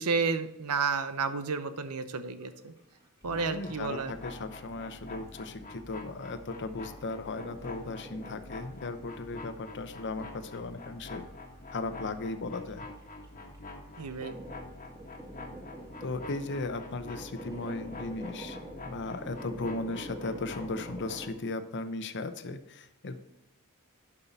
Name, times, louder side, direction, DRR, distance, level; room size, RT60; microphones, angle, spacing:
voice 1, 0.0-2.7 3.2-4.1 14.0-14.3, right 4 dB, 85° right, 11 dB, 0.8 m, -31 dB
sound 1, 2.4-3.5 3.8-5.6 6.0-9.3 9.6-9.7 10.2-10.4 10.7-10.8 11.1-11.6 11.9-21.3, right 1 dB, 15° right, 2.3 m, -47 dB
voice 2, 3.2-11.2 11.7-12.9 16.0-18.6 18.9-23.2, left 2 dB, 55° left, 10 dB, 0.8 m, -37 dB
sound 2, 3.2-21.3, left 2 dB, 35° left, 1.3 m, -46 dB
11.0 x 5.6 x 4.0 m, 0.92 s
head